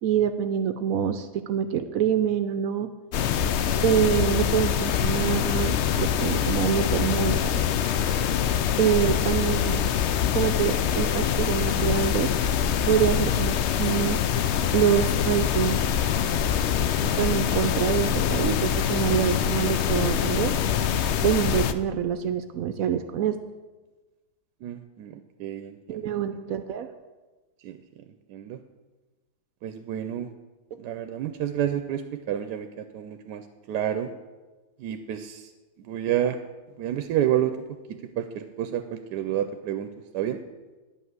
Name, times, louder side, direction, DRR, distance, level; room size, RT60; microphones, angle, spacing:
voice 1, 0.0-2.9 3.8-7.6 8.8-9.8 10.3-12.3 12.9-14.2 14.7-15.8 17.0-20.5 21.2-23.4 25.9-26.9, right 9 dB, 70° right, 10 dB, 0.9 m, -25 dB
sound 1, 3.1-21.7, left 8 dB, 80° left, 0.6 m, -24 dB
voice 2, 24.6-26.1 27.6-27.8 28.3-28.6 29.6-30.3 30.8-34.1 34.8-35.5 35.8-36.4 36.8-37.5 38.2-39.9 40.1-40.4, right 11 dB, 90° right, 8 dB, 1.2 m, -29 dB
10.0 x 5.6 x 7.9 m, 1.2 s
omnidirectional pair, 1.7 m